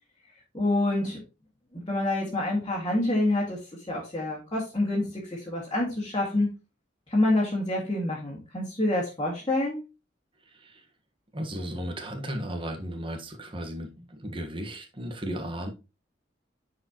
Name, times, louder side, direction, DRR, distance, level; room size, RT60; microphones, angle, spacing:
voice 1, 0.5-1.2 1.7-3.6 3.9-6.5 7.1-9.8, left 1 dB, 25° left, 2.2 m, -27 dB
voice 2, 11.3-15.7, equal, 25° right, 1.4 m, -35 dB
9.7 x 4.9 x 3.0 m
head